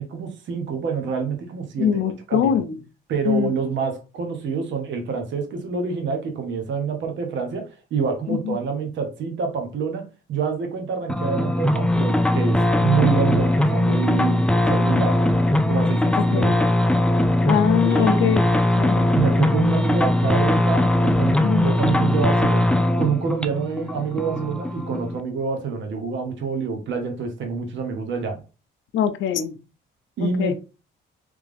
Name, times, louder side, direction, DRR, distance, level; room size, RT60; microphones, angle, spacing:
voice 1, 0.0-2.0 2.3-2.6 3.1-15.2 15.7-16.5 17.8-18.2 19.1-22.7 23.0-28.4 30.2-30.5, right 5 dB, 70° right, 1.1 m, -27 dB
voice 2, 1.8-2.8 3.3-3.5 8.4-8.6 16.2-16.5 17.4-18.4 18.8-19.1 21.4-21.7 28.9-29.6 30.2-30.5, left 8 dB, 75° left, 0.6 m, -23 dB
sound 1, 11.1-25.2, left 1 dB, 5° left, 0.3 m, -20 dB
3.5 x 3.2 x 3.4 m
cardioid pair, 90°, 20 cm